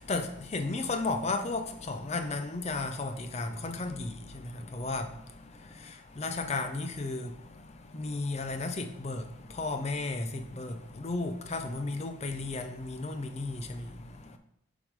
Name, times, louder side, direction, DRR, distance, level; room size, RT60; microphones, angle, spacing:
voice 1, 0.0-14.4, left 3 dB, 30° left, 0.5 m, -34 dB
7.2 x 3.7 x 4.7 m
head